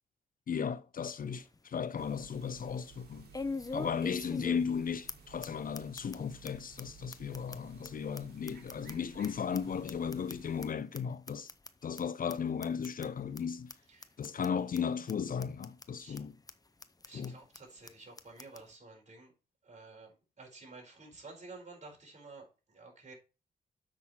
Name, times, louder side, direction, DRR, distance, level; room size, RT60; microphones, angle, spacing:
voice 1, 0.5-3.3 3.7-11.5 11.8-13.7 14.2-16.4 17.1-17.3, left 7 dB, 50° left, 0.6 m, -35 dB
sound 1, 1.0-1.1 1.5-1.6 3.3-4.8 5.1-5.2 5.4-5.5 5.7-6.2 6.4-6.5 6.8-6.9 7.1-9.3 9.5-10.7 10.9-11.0 11.3-11.7 12.0-12.1 12.3-12.4 12.6-13.1 13.4-13.5 13.7-13.8 14.0-14.5 14.7-14.8 15.1-15.2 15.4-15.9 16.2-16.3 16.5-16.6 16.8-17.3 17.5-17.6 17.9-18.0 18.2-18.6, left 3 dB, 20° left, 0.8 m, -42 dB
sound 2, 2.0-10.7, right 5 dB, 65° right, 2.5 m, -56 dB
voice 2, 17.0-19.3 19.6-23.1, right 3 dB, 40° right, 4.6 m, -52 dB
7.4 x 6.1 x 4.4 m
cardioid pair, 75°, 18 cm